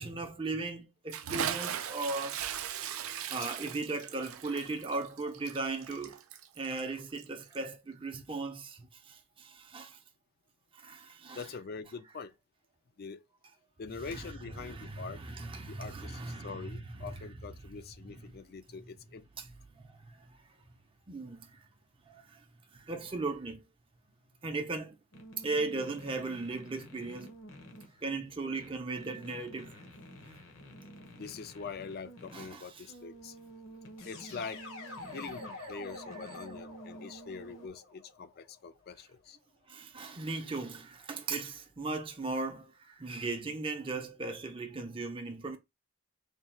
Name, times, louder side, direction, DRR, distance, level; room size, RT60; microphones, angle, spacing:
voice 1, 0.0-2.4 3.3-6.2 6.6-8.8 9.1-10.0 10.7-11.5 14.1-14.2 14.6-16.8 17.1-17.2 19.4-19.5 19.8-20.2 21.1-21.6 22.1-22.4 22.7-23.6 24.4-25.0 25.4-27.3 28.0-29.8 32.3-32.6 39.7-45.6, right 3 dB, 25° right, 0.5 m, -37 dB
Bathtub (filling or washing) / Splash splatter, 1.1-7.7, right 9 dB, 80° right, 0.4 m, -38 dB
voice 2, 11.4-12.3 13.0-13.2 13.8-15.2 15.7-19.3 31.2-33.4 34.0-34.6 35.1-39.4, left 5 dB, 45° left, 0.4 m, -44 dB
sound 1, 25.1-37.7, right 1 dB, 65° left, 0.9 m, -51 dB
sound 2, 34.0-38.9, left 3 dB, 90° left, 1.9 m, -47 dB
3.3 x 2.3 x 4.2 m
head